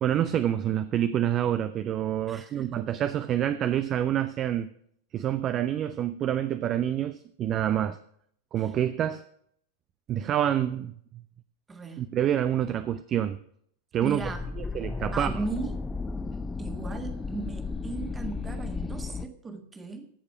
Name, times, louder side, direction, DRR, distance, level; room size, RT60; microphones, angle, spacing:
voice 1, 0.0-4.7 5.1-8.0 8.5-9.2 10.1-10.9 12.0-13.4 13.9-14.2 14.6-15.3, right 10 dB, 30° right, 0.5 m, -27 dB
voice 2, 2.3-2.9 8.6-8.7 11.7-12.1 14.0-14.5 15.1-15.8 16.6-20.1, right 4 dB, 15° right, 1.5 m, -37 dB
sound 1, 14.2-19.3, left 4 dB, 15° left, 0.6 m, -34 dB
15.0 x 6.7 x 5.9 m
figure-of-eight pair, 90°, 0 cm